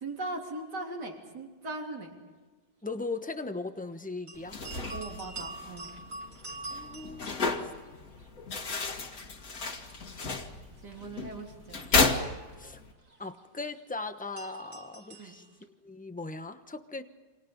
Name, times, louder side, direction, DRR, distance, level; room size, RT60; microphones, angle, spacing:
voice 1, 0.0-2.2 4.9-5.9 10.8-11.9 15.1-15.4, right 2 dB, 65° right, 1 dB, 3.9 m, -39 dB
voice 2, 2.8-4.6 6.7-7.7 12.6-12.8 13.2-15.4 15.8-17.0, left 3 dB, 5° left, 8 dB, 0.7 m, -38 dB
sound 1, 4.3-8.3 8.5-15.6, right 3 dB, 45° right, 3.2 m, -46 dB
sound 2, 4.4-12.9, left 3 dB, 50° left, 2.3 m, -33 dB
29.0 x 26.5 x 5.4 m, 1.3 s
omnidirectional pair, 2.0 m